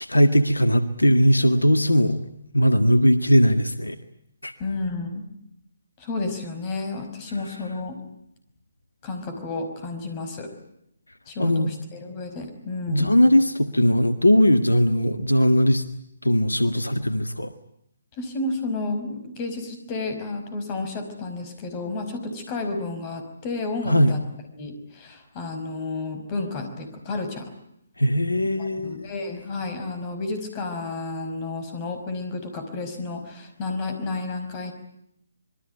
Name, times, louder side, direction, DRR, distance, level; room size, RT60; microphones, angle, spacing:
voice 1, 0.0-2.2 2.5-4.0 4.4-4.5 11.4-11.7 12.9-15.8 16.2-17.5 23.9-24.1 28.0-29.1, equal, 80° left, 10 dB, 1.8 m, -19 dB
voice 2, 4.6-5.2 6.0-8.0 9.0-10.5 11.3-13.1 18.2-24.2 24.5-27.5 28.6-34.7, left 3 dB, 25° left, 8 dB, 5.3 m, -31 dB
26.5 x 22.5 x 9.3 m, 0.75 s
figure-of-eight pair, 140°, 0 cm